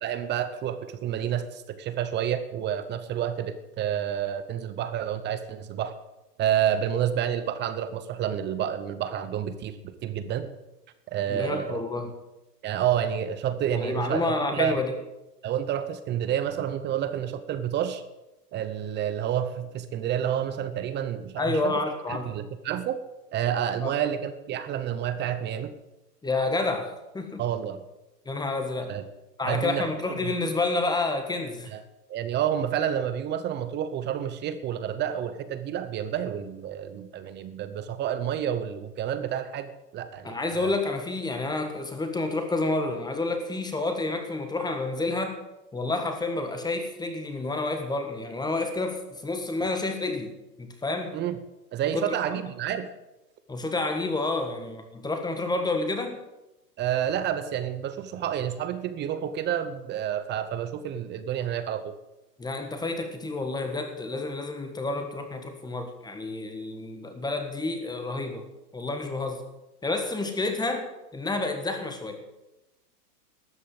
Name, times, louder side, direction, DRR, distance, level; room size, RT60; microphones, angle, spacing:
voice 1, 0.0-5.9 6.4-9.7 10.0-10.5 11.1-11.8 12.6-14.8 15.4-18.0 18.5-21.8 22.3-23.0 23.3-25.7 27.4-27.8 28.9-29.0 29.5-29.9 30.2-30.3 31.7-31.8 32.1-40.7 51.1-51.4 51.7-52.9 56.8-61.9, right 10 dB, 20° right, 12 dB, 0.8 m, -29 dB
voice 2, 11.3-12.1 13.8-14.9 21.4-22.3 23.8-23.9 26.2-27.4 28.2-28.9 29.4-31.7 40.2-45.4 45.7-50.3 50.6-51.2 51.9-52.1 53.5-56.2 62.4-68.5 68.7-69.4 69.8-72.2, left 2 dB, 10° left, 6 dB, 1.5 m, -29 dB
13.0 x 8.4 x 7.8 m, 0.98 s
hypercardioid pair, 130°, 49 cm